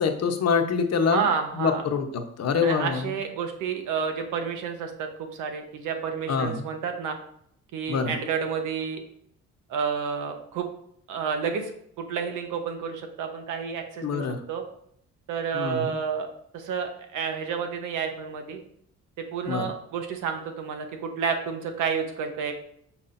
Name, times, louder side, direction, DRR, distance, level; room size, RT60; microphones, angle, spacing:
voice 1, 0.0-1.3 1.5-3.1 6.3-6.7 7.9-8.2 14.0-14.4 15.5-16.0 19.5-19.7, left 5 dB, 55° left, 6 dB, 1.0 m, -25 dB
voice 2, 1.0-1.8 2.6-7.2 7.7-9.0 9.7-10.7 11.1-11.7 12.0-14.6 15.3-16.3 16.5-18.6 19.2-22.5, right 6 dB, 85° right, 5 dB, 1.1 m, -30 dB
6.3 x 5.8 x 2.6 m, 0.69 s
cardioid pair, 90°, 30 cm